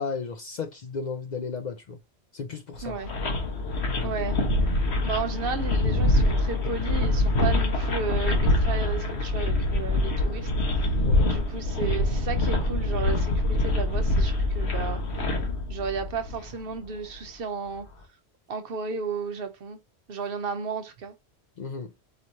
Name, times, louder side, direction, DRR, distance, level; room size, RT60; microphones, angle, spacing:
voice 1, 0.0-2.0 2.3-3.0 3.9-4.1 4.7-5.1 11.0-11.3 21.6-21.9, left 5 dB, 55° left, 0.6 m, -34 dB
sound 1, 2.7-16.5 16.7-16.8 17.2-17.3, left 2 dB, 75° left, 1.4 m, -25 dB
voice 2, 4.0-4.4 5.0-10.5 11.2-15.0 15.7-17.9 18.5-19.8 20.1-21.1, right 6 dB, 60° right, 0.9 m, -33 dB
5.0 x 3.1 x 2.6 m
omnidirectional pair, 1.1 m